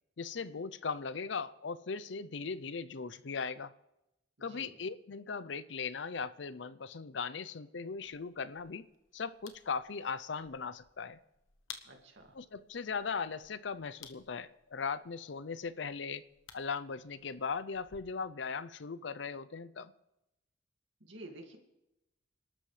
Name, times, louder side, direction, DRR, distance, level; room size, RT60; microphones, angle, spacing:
voice 1, 0.2-3.7 4.4-8.9 9.1-11.2 12.3-16.2 16.5-19.9, left 5 dB, 70° left, 0.6 m, -38 dB
voice 2, 4.4-4.7 11.8-12.4 21.0-21.6, right 1 dB, 75° right, 2.3 m, -50 dB
sound 1, 8.0-18.0, left 7 dB, 85° left, 1.2 m, -57 dB
27.0 x 12.5 x 3.3 m
head